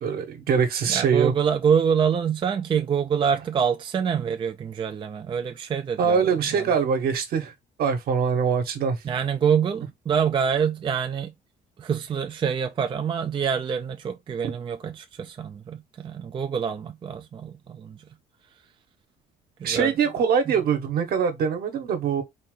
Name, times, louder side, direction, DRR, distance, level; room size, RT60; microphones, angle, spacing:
voice 1, 0.0-1.3 6.0-7.5 7.8-9.0 19.6-22.2, right 6 dB, 65° right, 1.3 m, -23 dB
voice 2, 0.9-6.7 9.0-11.3 11.8-18.0 19.6-19.9, right 7 dB, 30° right, 0.4 m, -26 dB
4.2 x 2.6 x 3.7 m
cardioid pair, 110°, 17 cm